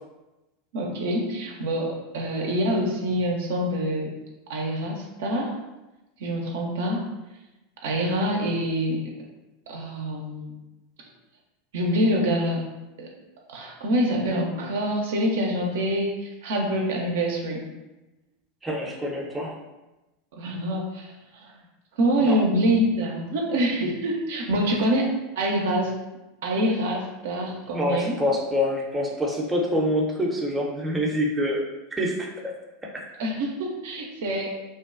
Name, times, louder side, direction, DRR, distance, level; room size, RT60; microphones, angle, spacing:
voice 1, 0.7-4.1 4.5-5.5 6.2-7.0 7.8-9.0 9.7-10.5 11.7-12.6 13.0-13.1 13.5-17.7 20.4-21.1 21.4-21.5 22.0-25.9 26.4-28.2 33.2-34.5, equal, 65° right, -1 dB, 0.4 m, -25 dB
voice 2, 18.6-19.6 22.2-22.4 27.7-31.6 32.0-32.5 32.9-33.0, left 1 dB, 15° right, -2 dB, 0.5 m, -26 dB
2.5 x 2.1 x 2.4 m, 1.0 s
figure-of-eight pair, 85°, 0 cm